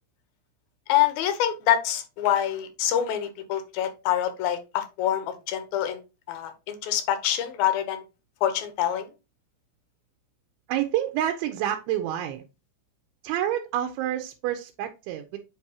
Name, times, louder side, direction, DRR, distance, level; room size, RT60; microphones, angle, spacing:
voice 1, 0.9-6.0 6.3-8.0 8.4-9.1, left 11 dB, 75° left, 2.6 m, -26 dB
voice 2, 10.7-12.4 13.2-15.4, right 11 dB, 90° right, 2.6 m, -28 dB
7.9 x 4.7 x 2.8 m
omnidirectional pair, 4.5 m